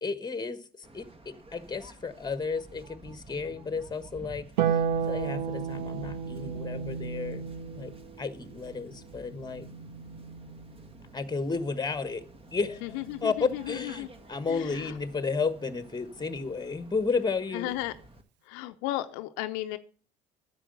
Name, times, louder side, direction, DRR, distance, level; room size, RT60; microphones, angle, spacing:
voice 1, 0.0-7.5 7.8-7.9 8.2-9.7 11.1-12.2 12.5-12.8 13.2-17.7, left 4 dB, 20° left, 1.3 m, -32 dB
Waves surf, 0.8-18.2, right 2 dB, 25° right, 1.7 m, -51 dB
Harp, 4.6-11.1 12.7-13.7, right 7 dB, 90° right, 0.7 m, -34 dB
voice 2, 12.8-14.1 14.5-15.0 17.5-17.9 18.4-19.8, left 16 dB, 75° left, 0.6 m, -34 dB
9.9 x 7.7 x 6.6 m
hypercardioid pair, 60°, 21 cm